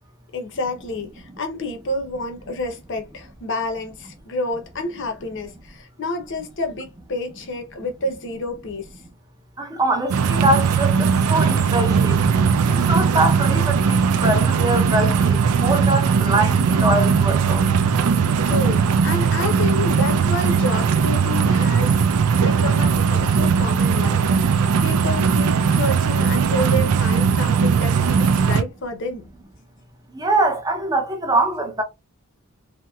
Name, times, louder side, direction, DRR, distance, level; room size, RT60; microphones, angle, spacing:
voice 1, 0.3-8.9 18.4-22.0 22.4-29.3, left 2 dB, 55° left, 0.7 m, -29 dB
voice 2, 9.6-12.3 12.7-17.6 30.1-31.8, right 2 dB, 20° right, 0.6 m, -23 dB
sound 1, 10.1-28.6, right 6 dB, 85° right, 0.4 m, -19 dB
2.9 x 2.7 x 2.3 m
head